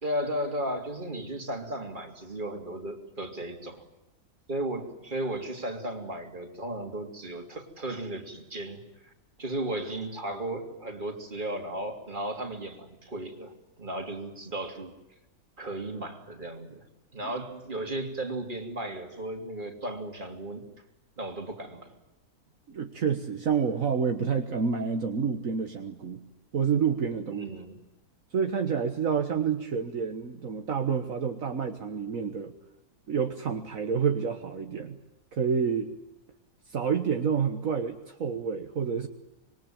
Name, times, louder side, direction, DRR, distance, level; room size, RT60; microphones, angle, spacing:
voice 1, 0.0-3.8 4.5-9.1 9.4-13.5 13.8-15.0 15.6-16.8 17.1-20.6 21.2-21.9 27.3-27.8, right 1 dB, 35° right, 4 dB, 3.2 m, -35 dB
voice 2, 22.7-26.2 26.5-27.5 28.3-32.5 33.1-35.0 35.3-35.9 36.7-39.1, right 6 dB, 65° right, 5 dB, 1.8 m, -28 dB
26.5 x 22.0 x 9.0 m, 0.98 s
omnidirectional pair, 1.6 m